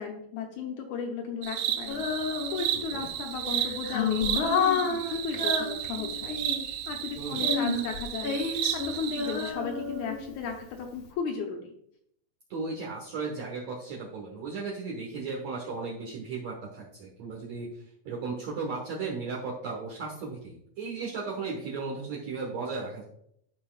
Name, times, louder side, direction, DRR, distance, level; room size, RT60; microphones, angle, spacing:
voice 1, 0.0-2.0 2.5-6.4 6.9-11.8, left 6 dB, 75° left, 2 dB, 1.7 m, -35 dB
sound 1, 1.4-9.5, right 11 dB, 75° right, 2.1 m, -33 dB
Female singing, 1.9-2.9 3.5-6.8 7.4-10.5, left 5 dB, 60° left, 1.4 m, -30 dB
voice 2, 2.7-3.1 7.2-7.5 12.5-17.7 18.1-23.0, right 4 dB, 60° right, -4 dB, 2.1 m, -35 dB
12.5 x 5.5 x 2.3 m, 0.72 s
omnidirectional pair, 4.2 m